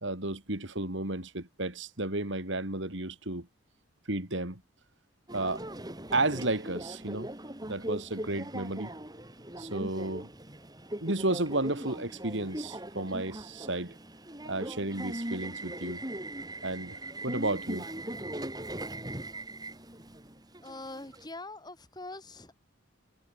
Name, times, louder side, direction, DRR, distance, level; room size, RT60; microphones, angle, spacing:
voice 1, 0.0-3.5 4.1-4.6 5.3-5.6 6.1-7.3 7.6-8.9 9.6-10.3 11.0-14.0 14.4-16.0 16.6-17.9, right 2 dB, 60° right, 3.5 m, -32 dB
Subway metro underground, 5.3-21.3, right 1 dB, 20° right, 5.2 m, -40 dB
voice 2, 20.6-22.5, left 2 dB, 20° left, 5.2 m, -43 dB
head